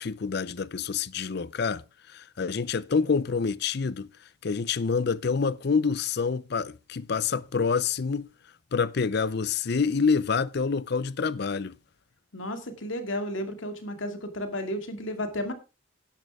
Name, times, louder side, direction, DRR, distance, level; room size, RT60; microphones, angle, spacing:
voice 1, 0.0-4.1 4.4-8.3 8.7-11.8, left 5 dB, 50° left, 0.5 m, -27 dB
voice 2, 12.3-15.5, left 1 dB, 70° left, 2.3 m, -33 dB
12.0 x 10.5 x 3.5 m
head